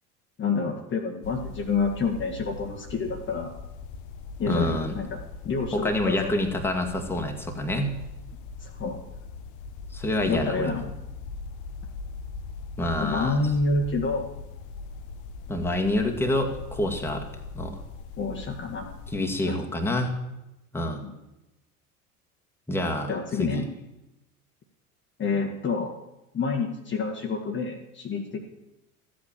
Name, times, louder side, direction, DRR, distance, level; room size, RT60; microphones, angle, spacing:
voice 1, 0.4-3.5 4.4-5.2 5.4-6.3 8.6-9.0 10.3-10.9 13.0-14.2 18.2-18.9 19.4-19.6 21.0-21.1 23.1-23.7 25.2-25.9 26.3-28.4, left 4 dB, 25° left, 1 dB, 1.6 m, -28 dB
sound 1, 1.2-19.2, left 4 dB, 40° left, 1.0 m, -40 dB
voice 2, 4.5-4.9 5.7-8.0 9.9-10.9 12.8-13.4 15.5-17.3 17.5-17.8 19.1-20.1 20.7-21.0 22.7-23.6, left 1 dB, 5° left, 2 dB, 1.9 m, -27 dB
14.0 x 8.4 x 7.5 m, 0.97 s
figure-of-eight pair, 70°, 44 cm